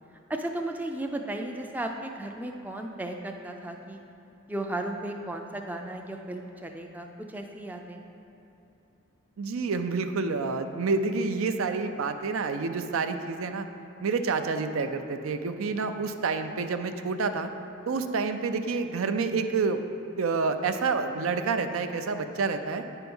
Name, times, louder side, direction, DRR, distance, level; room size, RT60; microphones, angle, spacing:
voice 1, 0.3-4.0 4.5-8.1, right 1 dB, 10° right, 3 dB, 0.3 m, -35 dB
voice 2, 9.4-13.7 14.0-17.5 17.9-19.8 20.2-22.8, right 4 dB, 85° right, 8 dB, 0.5 m, -28 dB
9.4 x 4.5 x 5.3 m, 3.0 s
head